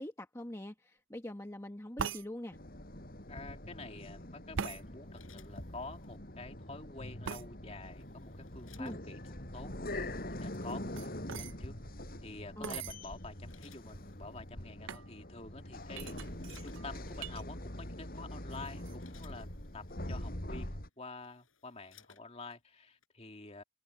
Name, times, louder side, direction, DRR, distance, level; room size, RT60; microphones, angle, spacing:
voice 1, 0.0-2.6 8.8-9.0 12.6-12.8, left 1 dB, 15° left, 1.4 m, -43 dB
sound 1, 2.0-2.3 4.5-4.8 7.2-7.5 10.5-11.5 12.6-13.0 13.7-13.8 13.9-14.3 14.9-15.1 15.9-17.4 17.8-18.2 18.5-18.9, right 6 dB, 70° right, 0.6 m, -41 dB
sound 2, 2.5-20.9, left 1 dB, 45° left, 5.8 m, -44 dB
voice 2, 3.3-9.2 9.5-9.7 10.3-11.8 12.2-16.2 16.6-19.5 19.7-23.6, left 3 dB, 30° left, 2.6 m, -48 dB
sound 3, 4.8-6.2 7.5-9.4 10.4-10.6 12.3-12.6 13.1-14.5 15.3-15.4 15.7-17.2 17.9-18.1 18.5-20.0 20.7-20.8 21.1-22.6 23.0-23.1, left 8 dB, 85° left, 7.4 m, -64 dB
open air
head